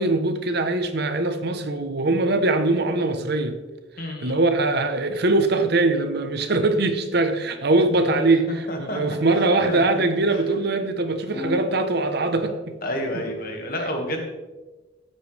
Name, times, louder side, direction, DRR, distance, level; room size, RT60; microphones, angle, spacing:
voice 1, 0.0-3.6 4.0-12.7 13.1-13.2, right 2 dB, 60° right, 8 dB, 0.9 m, -22 dB
voice 2, 4.0-4.4 8.1-8.2 8.5-9.0 9.7-9.8 11.3-11.6 12.8-14.2, left 1 dB, 50° left, 2 dB, 1.8 m, -29 dB
13.5 x 8.1 x 3.3 m, 1.2 s
head